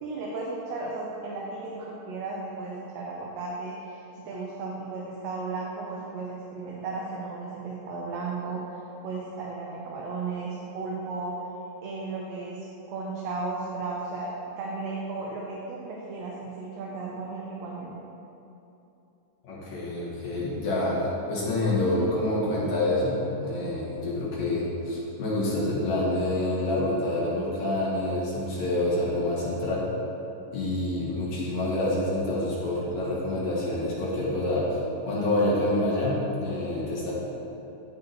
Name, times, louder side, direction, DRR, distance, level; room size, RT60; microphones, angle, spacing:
voice 1, 0.0-8.8 9.0-11.3 11.8-14.3 14.6-17.9 21.8-22.2, right 3 dB, 75° right, -3 dB, 1.9 m, -35 dB
voice 2, 19.4-29.9 30.5-34.8 35.0-37.1, left 1 dB, 75° left, -8 dB, 2.9 m, -27 dB
13.5 x 4.7 x 3.3 m, 2.9 s
omnidirectional pair, 3.3 m